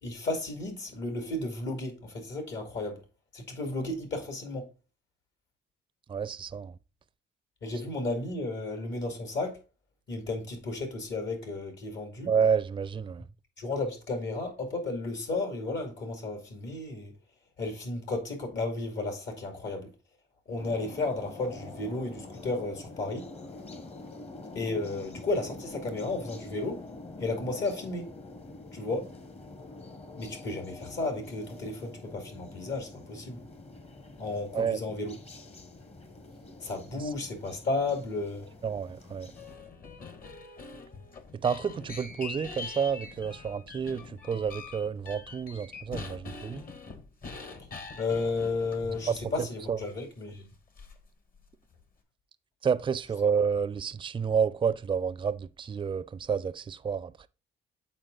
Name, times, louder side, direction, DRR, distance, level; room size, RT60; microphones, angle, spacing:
voice 1, 0.0-3.0 3.3-4.7 7.6-9.6 10.1-12.3 13.6-17.1 17.6-19.9 20.5-23.3 24.5-26.8 27.2-28.1 28.7-29.1 30.2-33.4 34.2-35.2 36.6-38.5 48.0-50.5, left 2 dB, 65° left, 2.4 m, -33 dB
voice 2, 6.1-6.8 12.3-13.3 34.5-34.8 38.6-39.3 41.4-46.6 49.1-49.2 49.7-49.8 52.6-57.3, right 6 dB, 25° right, 0.4 m, -29 dB
sound 1, 20.6-39.6, left 2 dB, 30° left, 1.0 m, -46 dB
sound 2, 39.4-49.5 49.8-49.9 50.8-51.1 51.3-51.8, left 4 dB, 45° left, 1.3 m, -44 dB
8.0 x 4.2 x 3.8 m
cardioid pair, 90°, 20 cm